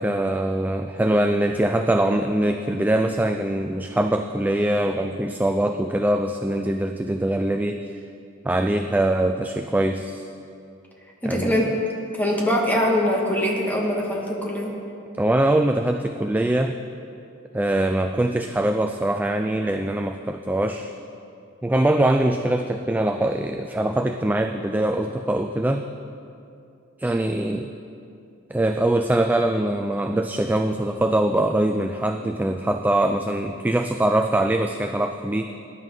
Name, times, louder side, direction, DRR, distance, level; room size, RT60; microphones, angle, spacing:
voice 1, 0.0-7.8 8.4-10.3 11.2-11.7 15.2-16.8 17.5-20.9 21.6-25.9 27.0-27.7 28.5-35.4, right 1 dB, 10° right, 6 dB, 0.3 m, -23 dB
voice 2, 11.2-11.7 12.1-14.7, equal, 10° left, -3 dB, 1.9 m, -23 dB
18.5 x 11.0 x 3.9 m, 2.6 s
head